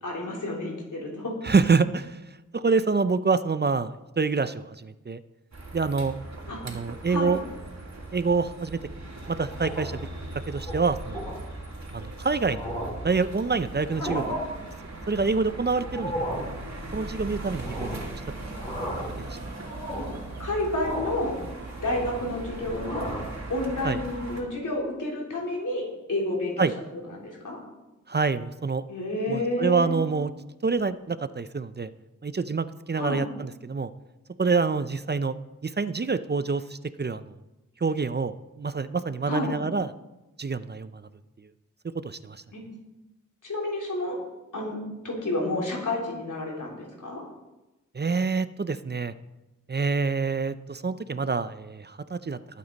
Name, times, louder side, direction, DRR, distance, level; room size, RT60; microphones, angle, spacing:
voice 1, 0.0-1.3 6.5-6.6 7.1-7.4 14.0-14.2 20.4-21.4 21.8-23.1 23.5-26.7 27.1-27.6 28.9-30.0 33.0-33.2 39.2-39.5 42.5-42.6 43.4-44.2 44.5-44.8 45.0-47.2, left 1 dB, 85° left, -2 dB, 3.7 m, -30 dB
voice 2, 1.4-2.2 2.5-5.2 5.7-6.1 6.6-7.4 8.1-8.8 9.3-10.0 10.5-11.3 11.9-12.6 13.0-14.3 15.1-16.1 16.9-18.2 19.2-19.3 23.8-24.0 26.6-26.7 28.1-28.8 29.3-30.3 30.6-31.9 32.2-33.9 34.4-35.3 35.6-37.3 37.8-39.9 40.4-41.0 42.0-42.4 47.9-49.1 49.7-52.4, right 4 dB, 35° right, 13 dB, 0.5 m, -26 dB
sound 1, 5.5-24.4, right 2 dB, 65° right, 2.9 m, -39 dB
sound 2, 9.5-10.1 10.5-10.7 11.1-11.4 12.0-12.1 12.4-13.1 13.8-14.4 15.8-16.5 17.6-18.1 18.5-19.2 19.6-20.2 20.8-21.3 21.6-22.3 22.7-23.3, equal, 20° left, 5.3 m, -34 dB
20.5 x 8.5 x 4.1 m, 1.0 s
wide cardioid pair, 75°, 30 cm